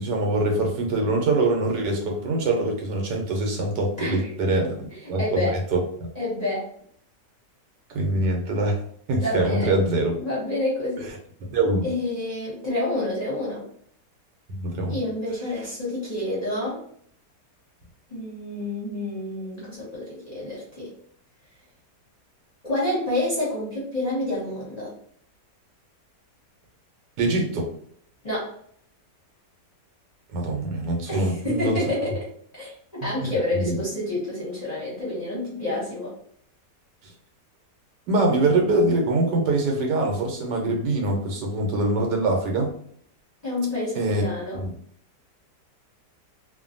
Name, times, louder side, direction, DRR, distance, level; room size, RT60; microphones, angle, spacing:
voice 1, 0.0-4.8 5.1-5.8 7.9-8.8 9.1-10.1 11.5-11.8 14.6-15.0 27.2-27.7 30.3-31.8 33.2-33.8 38.1-42.7 43.9-44.2 44.5-44.7, right 2 dB, 80° right, 1 dB, 1.3 m, -24 dB
voice 2, 4.0-4.3 5.0-5.6 6.1-6.7 9.2-9.7 10.2-11.1 11.8-13.6 14.9-16.8 18.1-20.9 22.6-24.9 28.2-28.5 31.1-32.2 32.5-36.1 43.4-44.6, left 1 dB, 30° left, -7 dB, 0.8 m, -28 dB
3.0 x 2.1 x 2.5 m, 0.63 s
omnidirectional pair, 1.8 m